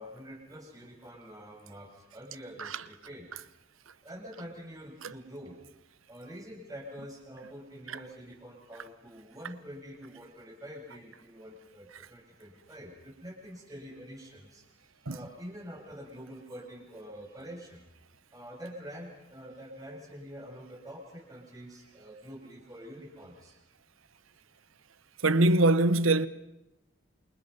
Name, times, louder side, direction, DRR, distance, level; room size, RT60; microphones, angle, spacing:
voice 1, 0.0-3.3 4.0-5.6 6.1-14.6 15.1-17.9 18.3-23.6, equal, 15° right, 7.3 m, -46 dB
voice 2, 25.2-26.3, right 2 dB, 75° right, 1.1 m, -22 dB
29.0 x 27.5 x 5.8 m
head